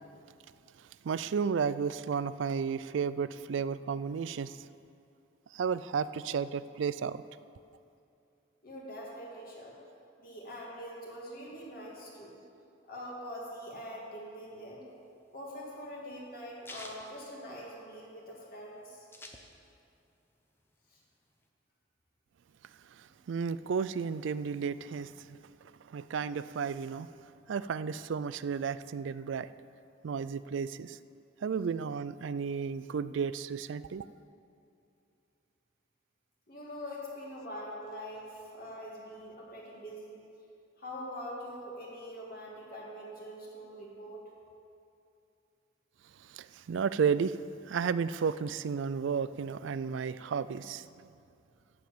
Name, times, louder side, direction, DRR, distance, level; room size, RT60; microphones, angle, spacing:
voice 1, 0.8-4.7 5.5-7.2 23.0-25.4 25.9-27.1 27.5-29.5 30.0-31.0 31.4-34.1 46.2-47.4 47.7-51.1, right 6 dB, 65° right, 15 dB, 0.4 m, -33 dB
voice 2, 8.6-9.8 10.2-12.4 12.9-14.8 15.3-19.1 20.9-21.0 36.5-40.2 40.8-44.2, equal, 50° left, -4 dB, 2.1 m, -44 dB
sound 1, 14.9-18.1 18.4-18.5 18.7-20.0 20.3-21.5, left 1 dB, 10° left, 0.8 m, -50 dB
13.5 x 5.2 x 8.5 m, 2.6 s
head